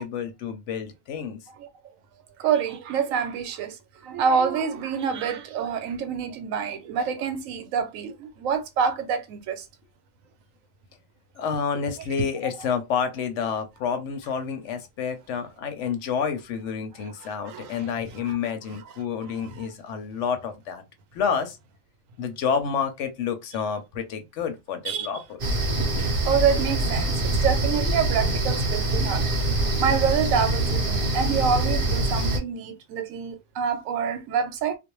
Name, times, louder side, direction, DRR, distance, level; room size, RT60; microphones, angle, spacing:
voice 1, 0.0-1.4 11.4-20.8 21.1-21.6 22.2-25.6, left 6 dB, 70° left, 0.9 m, -29 dB
voice 2, 2.4-3.7 4.0-9.6 17.4-17.8 18.3-18.4 19.4-19.5 24.9-25.1 25.8-25.9 26.3-29.2 29.8-34.8, right 7 dB, 85° right, 1.0 m, -26 dB
sound 1, 25.4-32.4, right 2 dB, 50° right, 0.8 m, -24 dB
2.4 x 2.0 x 3.0 m
omnidirectional pair, 1.4 m